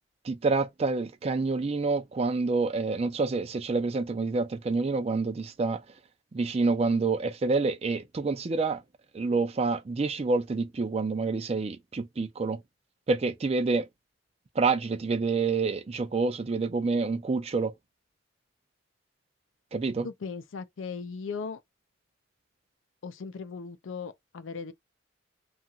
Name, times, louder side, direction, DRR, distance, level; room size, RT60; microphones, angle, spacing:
voice 1, 0.2-5.8 6.3-8.8 9.1-12.6 13.1-13.9 14.6-17.7 19.7-20.1, right 3 dB, 30° right, 0.4 m, -27 dB
voice 2, 20.0-21.6 23.0-24.7, left 5 dB, 90° left, 0.5 m, -38 dB
2.8 x 2.4 x 2.6 m
head